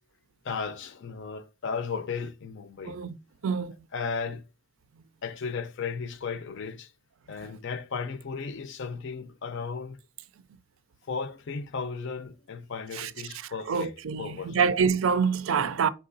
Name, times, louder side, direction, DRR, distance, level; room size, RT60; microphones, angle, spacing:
voice 1, 0.4-3.0 3.9-4.4 5.2-6.9 7.3-10.0 11.1-14.7, left 5 dB, 65° left, 0.5 m, -35 dB
voice 2, 2.9-3.2 3.4-3.7 13.0-13.1 13.7-15.9, right 6 dB, 75° right, 0.4 m, -26 dB
4.5 x 3.8 x 2.5 m
head